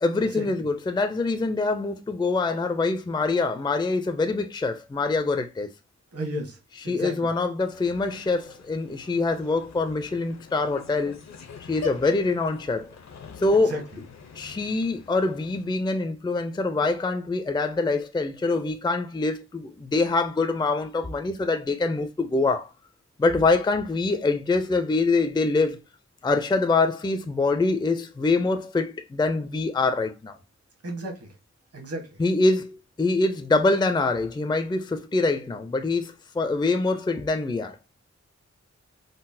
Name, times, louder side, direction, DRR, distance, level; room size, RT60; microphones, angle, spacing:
voice 1, 0.0-5.7 6.9-11.2 11.7-12.9 13.4-13.8 14.4-22.7 23.2-25.8 26.2-30.4 32.2-37.8, left 3 dB, 15° left, 0.4 m, -24 dB
voice 2, 6.1-6.6 6.8-7.3 13.6-13.8 30.8-31.2 31.7-32.1, right 1 dB, 55° right, 1.1 m, -32 dB
sound 1, 7.6-15.9, left 6 dB, 65° left, 0.6 m, -44 dB
3.8 x 2.0 x 2.6 m
wide cardioid pair, 65°, 29 cm